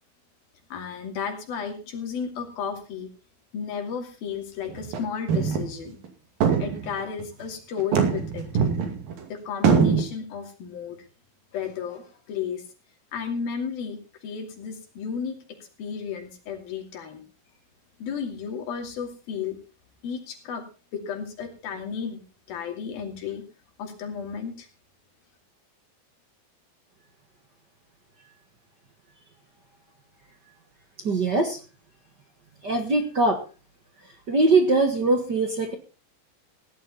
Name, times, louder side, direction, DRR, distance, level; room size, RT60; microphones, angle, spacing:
voice 1, 0.7-3.1 3.5-6.0 6.6-8.4 9.3-11.0 11.5-12.6 13.1-15.4 15.8-17.2 18.0-19.6 20.0-20.6 20.9-23.4 23.8-24.7, left 6 dB, 80° left, 4 dB, 4.5 m, -33 dB
sound 1, 4.7-5.0 5.3-5.7 6.0-6.1 6.4-7.2 7.8-9.2 9.6-10.0, right 6 dB, 70° right, 4.1 m, -22 dB
voice 2, 31.0-31.6 32.6-33.4 34.3-35.7, right 3 dB, 40° right, 5 dB, 1.5 m, -21 dB
17.0 x 11.5 x 4.1 m, 0.33 s
omnidirectional pair, 4.2 m